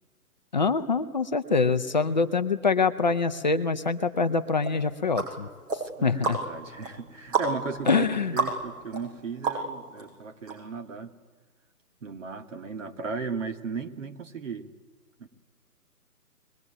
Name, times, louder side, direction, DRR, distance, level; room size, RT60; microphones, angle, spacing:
voice 1, 0.5-5.5 6.0-6.4 7.9-8.4, left 4 dB, 30° left, 11 dB, 0.7 m, -25 dB
sound 1, 4.6-10.0 10.5-10.6, right 3 dB, 35° right, 6.6 m, -32 dB
voice 2, 6.0-8.1 8.3-11.1 12.0-14.7 15.2-15.3, right 4 dB, 50° right, 6 dB, 2.2 m, -36 dB
24.5 x 21.5 x 9.3 m, 1.5 s
figure-of-eight pair, 145°, 48 cm